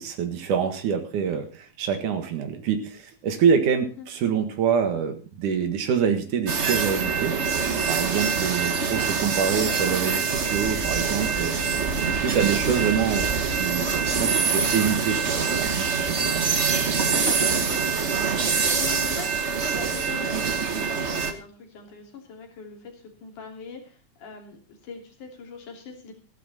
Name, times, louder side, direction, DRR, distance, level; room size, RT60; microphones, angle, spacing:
voice 1, 0.0-11.8 12.1-13.9 14.2-16.7, right 7 dB, 80° right, 6 dB, 3.1 m, -26 dB
sound 1, 6.5-21.3, right 5 dB, 65° right, 0.6 m, -25 dB
voice 2, 18.7-26.1, left 5 dB, 85° left, 3 dB, 4.6 m, -42 dB
15.5 x 12.0 x 4.2 m, 0.35 s
omnidirectional pair, 3.5 m